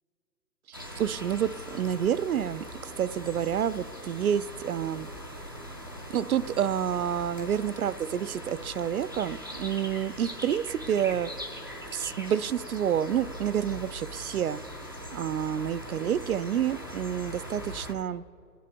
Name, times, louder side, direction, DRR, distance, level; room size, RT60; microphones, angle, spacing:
sound 1, 0.7-17.9, equal, 15° right, 0.4 m, -41 dB
voice 1, 0.7-5.1 6.1-11.3 11.9-14.6 15.1-18.2, right 9 dB, 65° right, 14 dB, 0.5 m, -29 dB
26.5 x 10.0 x 5.2 m, 2.8 s
hypercardioid pair, 150°, 47 cm